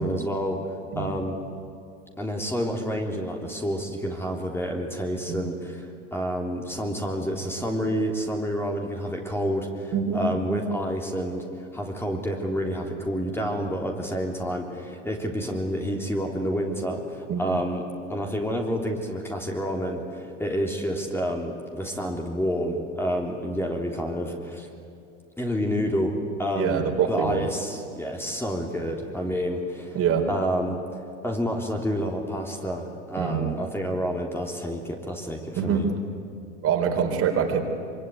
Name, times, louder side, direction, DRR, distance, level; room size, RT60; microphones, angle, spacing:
voice 1, 0.0-1.3 2.2-17.8 18.1-24.7 25.4-26.1 26.4-30.0 30.3-35.9, equal, 5° left, 1 dB, 3.5 m, -29 dB
voice 2, 0.9-1.3 5.3-5.4 9.9-10.2 10.5-10.6 17.3-17.5 26.5-27.5 29.9-30.3 33.2-33.5 35.6-35.8 36.6-37.6, right 7 dB, 40° right, 4 dB, 4.2 m, -25 dB
25.0 x 24.5 x 9.4 m, 2.5 s
hypercardioid pair, 90°, 37 cm